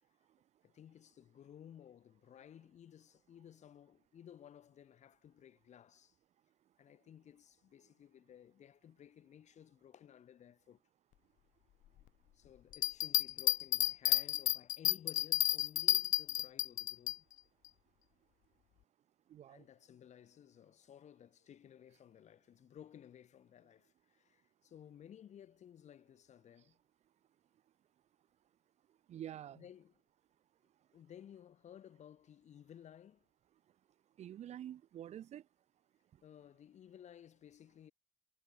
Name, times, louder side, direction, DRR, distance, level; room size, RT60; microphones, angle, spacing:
voice 1, 0.6-6.2 6.8-10.8 12.3-17.3 19.5-26.8 29.5-30.0 30.9-33.3 36.2-37.9, left 9 dB, 60° left, 4.4 m, -57 dB
sound 1, 12.7-17.2, left 14 dB, 75° left, 0.5 m, -31 dB
voice 2, 19.3-19.7 29.1-29.6 34.2-35.4, right 11 dB, 55° right, 0.5 m, -47 dB
cardioid pair, 145°, 14 cm